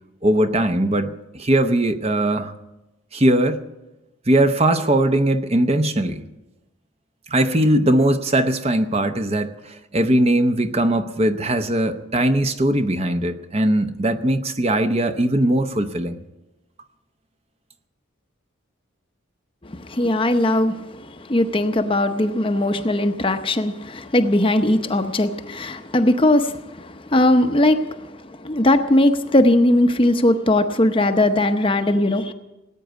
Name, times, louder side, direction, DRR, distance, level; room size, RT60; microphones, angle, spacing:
voice 1, 0.2-2.5 3.1-3.6 4.3-6.2 7.3-16.2, right 1 dB, 30° right, 8 dB, 0.8 m, -20 dB
voice 2, 19.6-32.3, left 1 dB, 25° left, 7 dB, 0.7 m, -19 dB
19.0 x 9.1 x 8.2 m, 1.0 s
head